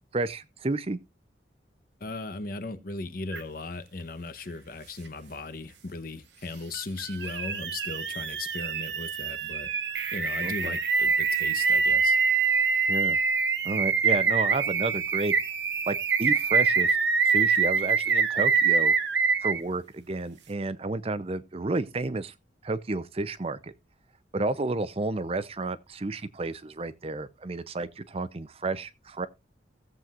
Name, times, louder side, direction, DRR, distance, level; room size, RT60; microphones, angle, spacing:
voice 1, 0.1-1.0 10.4-10.8 12.9-13.2 13.6-15.3 15.9-17.0 17.3-18.9 19.4-22.3 22.6-23.7 24.3-29.3, right 2 dB, 35° right, 0.5 m, -31 dB
voice 2, 2.0-9.7 10.1-12.2, left 3 dB, 55° left, 0.9 m, -37 dB
sound 1, 3.3-3.4 6.7-19.6, right 5 dB, 80° right, 1.1 m, -25 dB
16.5 x 7.6 x 2.4 m
head